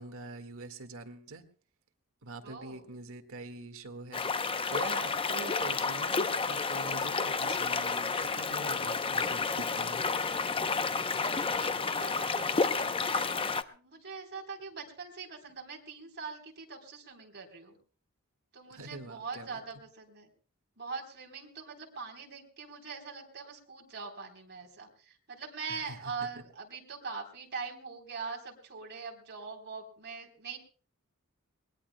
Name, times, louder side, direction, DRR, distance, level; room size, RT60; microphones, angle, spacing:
voice 1, 0.0-1.4 2.2-10.0 18.7-19.6 25.7-26.3, right 2 dB, 65° right, 6 dB, 1.8 m, -45 dB
voice 2, 2.4-2.9 11.2-13.3 13.7-17.8 18.5-20.3 20.8-30.6, right 5 dB, 50° right, 2 dB, 3.8 m, -42 dB
sound 1, 4.1-13.6, left 4 dB, 25° left, 0.7 m, -31 dB
23.0 x 20.5 x 2.2 m, 0.40 s
head